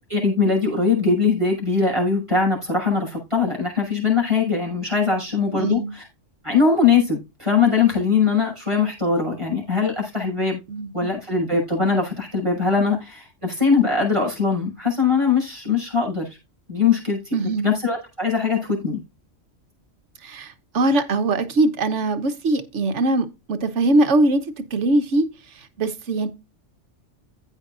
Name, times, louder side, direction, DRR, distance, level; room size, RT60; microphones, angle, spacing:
voice 1, 0.1-6.0 6.4-10.6 10.9-16.3 16.7-17.3 17.6-19.0, left 5 dB, 25° right, 6.1 m, -21 dB
voice 2, 5.5-5.9 10.7-11.1 17.3-17.7 20.2-25.3 25.5-26.3, right 2 dB, 70° right, 1.4 m, -22 dB
15.0 x 5.5 x 2.5 m
omnidirectional pair, 1.3 m